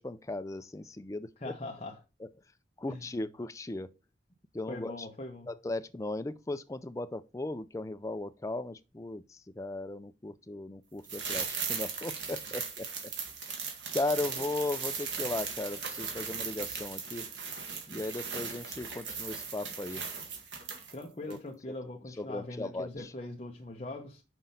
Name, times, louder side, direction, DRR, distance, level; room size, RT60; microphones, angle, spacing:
voice 1, 0.0-1.3 2.8-3.9 4.5-5.0 5.5-13.1 13.9-17.3 17.9-20.0 21.3-21.4 22.2-23.1, left 2 dB, 15° left, 0.4 m, -37 dB
voice 2, 1.4-2.0 2.9-3.1 4.7-5.5 20.9-24.2, left 2 dB, 35° left, 0.8 m, -41 dB
sound 1, 11.0-21.0 21.3-21.4, right 5 dB, 80° right, 1.9 m, -38 dB
6.0 x 5.1 x 5.5 m
head